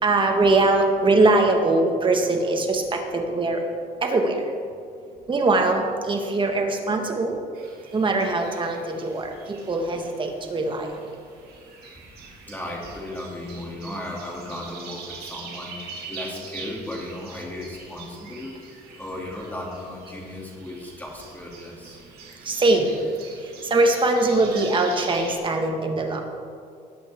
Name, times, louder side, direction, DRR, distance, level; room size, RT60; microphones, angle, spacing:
voice 1, 0.0-3.6 4.0-4.4 5.3-7.4 7.9-10.9 22.5-22.9 23.7-26.2, right 2 dB, 30° right, 3 dB, 1.8 m, -22 dB
sound 1, 7.5-25.4, right 4 dB, 65° right, 2.7 m, -43 dB
voice 2, 12.5-15.8 16.1-18.5 19.0-22.0, left 1 dB, 10° left, -2 dB, 2.9 m, -35 dB
19.5 x 8.3 x 3.8 m, 2.3 s
cardioid pair, 110°, 17 cm